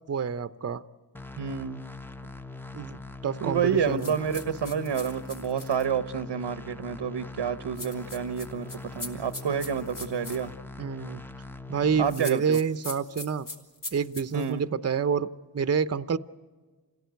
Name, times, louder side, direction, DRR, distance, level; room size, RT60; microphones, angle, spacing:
voice 1, 0.1-0.8 2.7-3.0 3.2-4.1 10.8-11.2 11.7-13.5 13.9-15.3 15.5-16.2, right 6 dB, 35° right, 14 dB, 0.7 m, -28 dB
sound 1, 1.1-12.1, left 3 dB, 5° left, 0.7 m, -42 dB
voice 2, 1.4-1.8 3.4-8.7 9.0-10.5 12.0-12.6 14.3-14.6, right 7 dB, 85° right, 13 dB, 0.9 m, -29 dB
sound 2, 4.0-5.9 7.8-10.4 12.0-14.5, left 2 dB, 50° left, 3.7 m, -40 dB
27.0 x 17.0 x 9.3 m, 1.4 s
wide cardioid pair, 90°, 42 cm